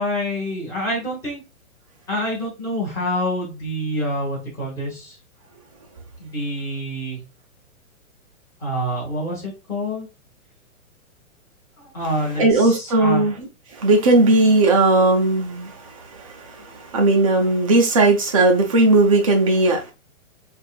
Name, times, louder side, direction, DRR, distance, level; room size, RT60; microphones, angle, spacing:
voice 1, 0.0-1.4 2.1-5.2 6.2-7.2 8.6-10.1 11.8-13.2, equal, 5° left, 1.5 m, -27 dB
voice 2, 12.4-19.9, right 2 dB, 25° right, 0.6 m, -17 dB
5.4 x 2.6 x 2.4 m
hypercardioid pair, 170°, 42 cm